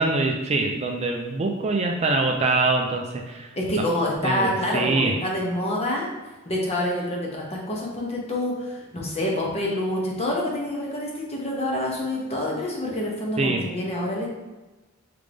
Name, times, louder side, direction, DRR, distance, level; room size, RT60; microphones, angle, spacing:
voice 1, 0.0-3.5 4.2-5.1 13.4-13.7, right 3 dB, 30° right, 2 dB, 0.4 m, -24 dB
voice 2, 3.5-6.1 6.5-14.3, left 1 dB, 30° left, -2 dB, 1.0 m, -27 dB
3.8 x 3.5 x 3.4 m, 1.2 s
head